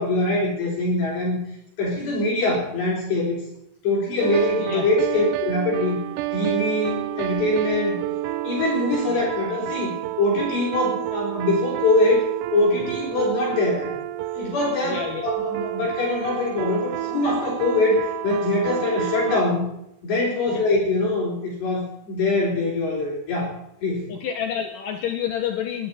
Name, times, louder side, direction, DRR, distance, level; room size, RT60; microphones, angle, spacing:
voice 1, 0.0-1.4 1.8-3.4 3.8-6.0 6.3-8.0 8.4-13.9 14.3-19.7 20.0-23.6 23.8-24.1, left 2 dB, 60° left, -4 dB, 6.1 m, -23 dB
sound 1, 4.2-19.4, right 14 dB, 80° right, 2.6 m, -30 dB
voice 2, 14.8-15.3 20.5-20.6 24.1-25.9, left 8 dB, 80° left, 3 dB, 1.9 m, -29 dB
25.5 x 11.5 x 4.3 m, 0.78 s
omnidirectional pair, 5.6 m